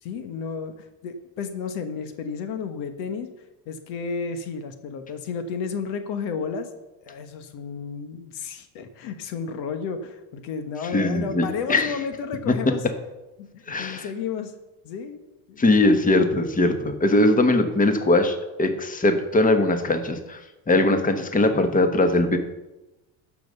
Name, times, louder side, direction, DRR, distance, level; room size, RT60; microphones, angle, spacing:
voice 1, 0.0-3.3 3.7-6.7 7.0-12.8 13.4-14.5 14.8-15.2 15.5-15.9, left 5 dB, 85° left, 8 dB, 1.3 m, -32 dB
voice 2, 10.9-11.9 12.5-12.6 13.7-14.1 15.6-20.4 20.7-22.4, left 2 dB, 20° left, 8 dB, 1.3 m, -20 dB
12.0 x 5.3 x 6.7 m, 1.0 s
supercardioid pair, 100°, 41 cm